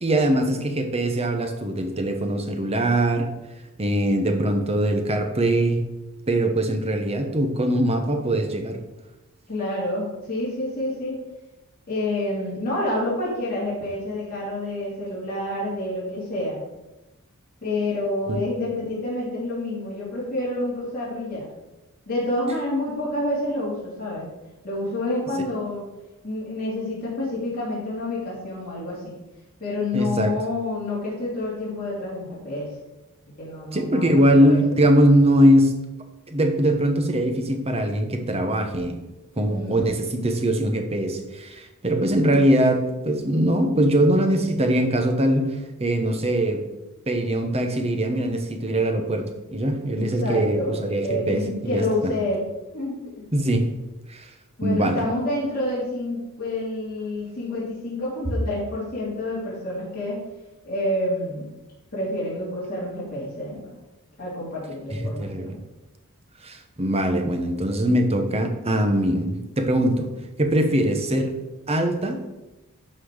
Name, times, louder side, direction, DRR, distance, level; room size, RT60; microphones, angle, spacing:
voice 1, 0.0-3.3 3.8-5.9 6.3-8.8 18.3-18.4 29.9-30.3 33.7-35.7 36.3-39.0 39.4-46.6 47.1-52.1 53.3-53.7 54.1-54.3 54.6-55.0 64.9-65.5 66.4-70.1 70.4-71.3 71.7-72.2, right 1 dB, 30° right, 5 dB, 1.1 m, -22 dB
voice 2, 9.5-11.2 11.9-16.6 17.6-21.5 22.1-24.3 24.6-25.8 26.2-29.1 29.6-32.7 33.4-34.6 39.4-39.9 49.9-50.7 51.0-52.5 52.7-53.0 54.6-60.2 60.6-61.5 61.9-63.7 64.2-65.6, left 1 dB, 40° left, -9 dB, 3.2 m, -28 dB
11.5 x 4.3 x 5.0 m, 1.0 s
head